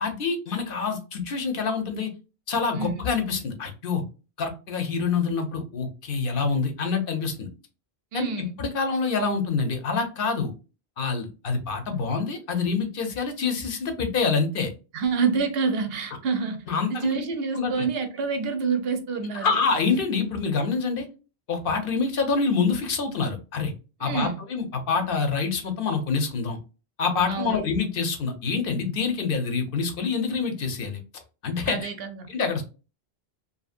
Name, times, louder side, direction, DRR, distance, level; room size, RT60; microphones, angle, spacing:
voice 1, 0.0-2.1 2.5-4.0 4.4-7.5 8.1-10.5 11.0-14.7 16.7-17.2 17.5-17.9 19.3-21.1 21.5-23.7 24.0-26.6 27.0-31.0 31.4-31.9 32.3-32.6, left 5 dB, 60° left, 0.8 m, -26 dB
voice 2, 2.7-3.1 8.1-8.6 14.9-16.6 16.9-19.5 24.0-24.4 27.3-27.6 31.7-32.3, right 5 dB, 70° right, 0.8 m, -27 dB
2.7 x 2.6 x 2.4 m
omnidirectional pair, 1.1 m